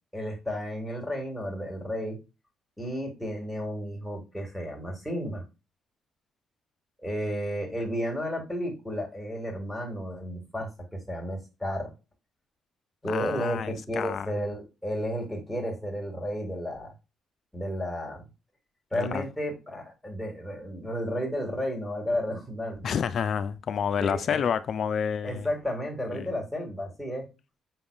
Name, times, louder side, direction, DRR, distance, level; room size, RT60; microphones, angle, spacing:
voice 1, 0.1-2.2 2.8-5.4 7.0-11.9 13.0-16.9 17.5-18.2 18.9-22.9 24.0-24.4 25.2-27.3, equal, 5° left, 2.0 m, -32 dB
voice 2, 13.1-14.3 18.9-19.2 22.8-25.5 26.1-26.3, left 7 dB, 60° left, 0.4 m, -29 dB
6.0 x 3.5 x 2.3 m
cardioid pair, 90°, 0 cm